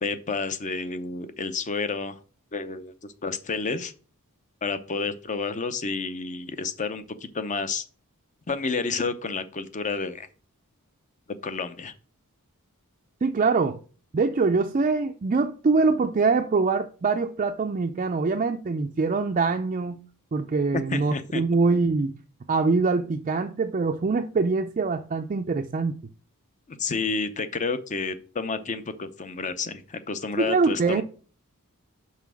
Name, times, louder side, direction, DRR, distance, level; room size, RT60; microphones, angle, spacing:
voice 1, 0.0-2.2 2.5-3.9 4.6-7.8 8.5-10.3 11.4-11.9 20.7-21.4 26.7-31.0, left 4 dB, 35° left, 0.6 m, -30 dB
voice 2, 13.2-13.8 14.1-20.0 20.3-22.2 22.5-26.0 30.4-31.0, right 4 dB, 35° right, 0.4 m, -24 dB
5.7 x 4.2 x 6.1 m
head